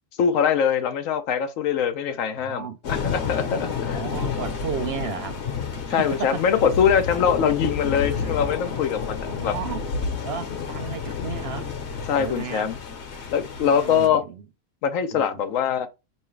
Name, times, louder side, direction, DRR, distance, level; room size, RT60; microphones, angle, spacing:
voice 1, 0.2-4.0 5.9-9.5 12.1-12.8 13.3-14.2 14.8-15.9, left 7 dB, 85° left, 1.1 m, -23 dB
voice 2, 2.4-2.8 3.5-5.5 5.9-6.4 8.0-8.4 9.3-9.9 10.2-11.7 12.2-12.7 13.6-14.4 15.1-15.5, right 7 dB, 60° right, 0.8 m, -34 dB
sound 1, 2.8-14.1, left 6 dB, 60° left, 1.1 m, -30 dB
4.7 x 3.0 x 3.2 m
omnidirectional pair, 1.3 m